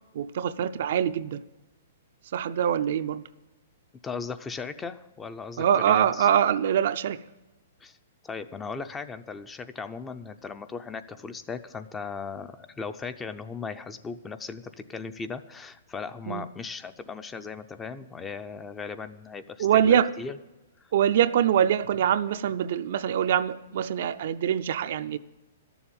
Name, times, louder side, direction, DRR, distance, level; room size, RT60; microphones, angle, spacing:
voice 1, 0.1-1.4 2.3-3.3 5.6-7.2 16.3-16.4 19.6-20.1 20.9-25.2, right 9 dB, 60° right, 0.5 m, -24 dB
voice 2, 4.0-6.3 7.8-8.0 8.2-20.3 20.8-20.9, left 5 dB, 15° left, 0.6 m, -37 dB
12.5 x 7.1 x 8.7 m
hypercardioid pair, 140°, 0 cm